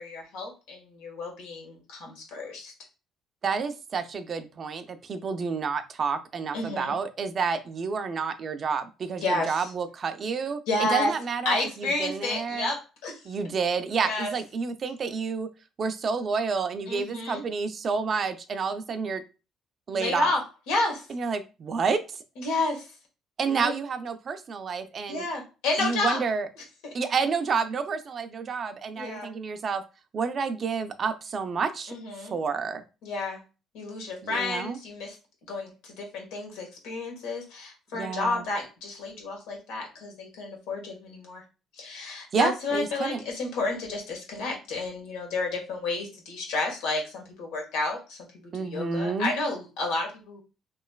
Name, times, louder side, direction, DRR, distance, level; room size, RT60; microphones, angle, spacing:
voice 1, 0.0-2.7 6.5-7.0 9.2-9.6 10.7-11.1 11.4-13.2 14.0-14.3 16.9-17.4 19.9-20.4 20.7-21.1 22.4-22.9 23.5-23.7 25.1-26.2 26.8-26.9 28.9-29.3 31.9-32.3 33.0-33.4 33.7-35.1 35.5-41.4 41.8-48.2 48.6-50.4, left 2 dB, 85° left, 1 dB, 1.3 m, -31 dB
voice 2, 3.4-12.7 13.2-15.5 15.8-19.2 19.9-20.3 21.1-22.0 23.4-25.2 25.8-26.5 26.9-29.8 30.1-32.8 34.2-34.8 37.9-38.4 42.3-43.2 48.5-49.3, right 5 dB, 45° right, 9 dB, 0.5 m, -29 dB
3.1 x 2.9 x 2.3 m, 0.31 s
supercardioid pair, 85°, 0 cm